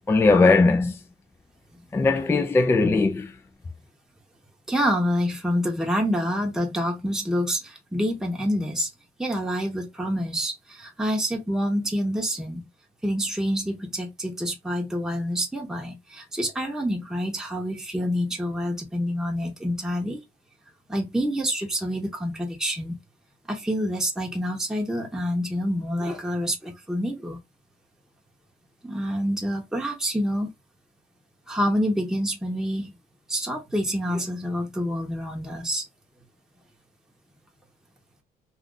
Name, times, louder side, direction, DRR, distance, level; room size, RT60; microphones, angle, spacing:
voice 1, 0.1-1.0 1.9-3.3, left 3 dB, 15° left, 0.4 m, -19 dB
voice 2, 4.7-8.9 9.2-12.7 13.0-20.2 20.9-23.0 23.5-27.4 28.8-30.5 31.5-32.9 33.3-35.8, equal, 5° right, 0.9 m, -27 dB
2.4 x 2.4 x 3.7 m
cardioid pair, 110°, 17 cm